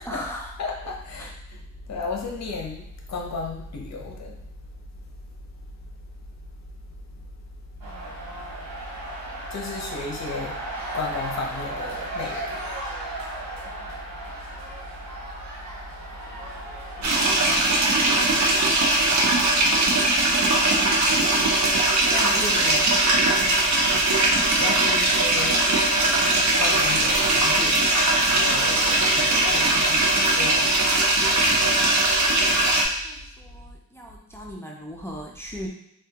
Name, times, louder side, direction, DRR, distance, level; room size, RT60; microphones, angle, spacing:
voice 1, 0.0-0.5 1.2-1.3 31.7-32.0 32.6-35.7, equal, 10° left, -1 dB, 0.4 m, -38 dB
voice 2, 0.6-4.4 9.5-10.6 10.9-12.6 22.0-23.0 24.6-26.0 26.6-27.9 28.2-30.6, left 4 dB, 50° left, 1 dB, 0.7 m, -33 dB
sound 1, 7.8-19.2, right 1 dB, 80° right, 1.2 m, -36 dB
sound 2, 17.0-32.8, right 2 dB, 55° right, 0.7 m, -20 dB
3.3 x 2.3 x 2.8 m, 0.78 s
wide cardioid pair, 115°, 33 cm